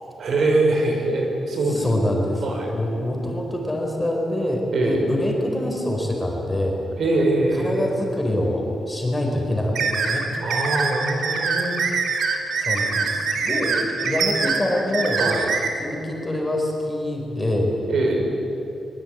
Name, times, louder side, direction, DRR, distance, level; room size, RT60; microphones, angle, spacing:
voice 1, 0.2-1.9 2.4-2.7 4.7-5.1 7.0-7.9 10.4-11.8 15.2-15.5 17.9-18.3, right 2 dB, 60° right, 2 dB, 5.4 m, -23 dB
voice 2, 1.7-2.4 2.7-6.8 7.6-10.3 12.5-15.2 15.8-17.7, left 1 dB, 10° left, 0 dB, 4.8 m, -25 dB
sound 1, 9.7-15.7, right 5 dB, 75° right, 3.1 m, -24 dB
23.5 x 22.5 x 9.5 m, 2.8 s
wide cardioid pair, 145°, 0 cm